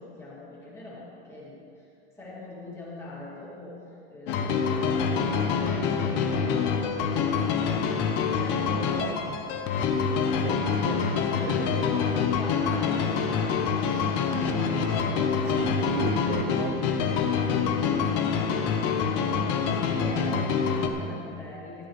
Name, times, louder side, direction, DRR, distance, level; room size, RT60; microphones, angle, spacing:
voice 1, 0.0-1.9 2.2-7.9 8.2-9.3 9.6-9.7 10.9-15.6 17.4-21.9, left 2 dB, 10° left, -7 dB, 2.4 m, -42 dB
sound 1, 4.3-20.9, left 6 dB, 35° left, 0.7 m, -26 dB
sound 2, 10.1-18.0, equal, 10° right, 2.4 m, -47 dB
voice 2, 10.4-11.1 15.5-16.9, right 7 dB, 45° right, 4 dB, 0.6 m, -35 dB
15.0 x 10.5 x 3.2 m, 2.6 s
supercardioid pair, 170°, 30 cm